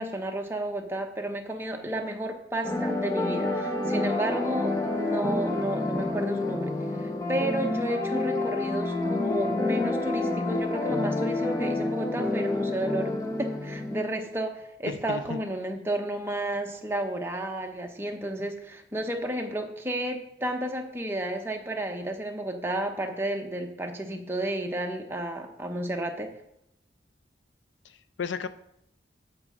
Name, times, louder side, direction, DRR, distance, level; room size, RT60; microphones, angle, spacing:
voice 1, 0.0-26.3, right 1 dB, 15° right, 3 dB, 0.8 m, -32 dB
sound 1, 2.6-14.0, left 2 dB, 15° left, 0.9 m, -29 dB
voice 2, 14.8-15.4 27.8-28.5, left 5 dB, 90° left, 12 dB, 0.5 m, -34 dB
8.8 x 7.5 x 3.6 m, 0.78 s
head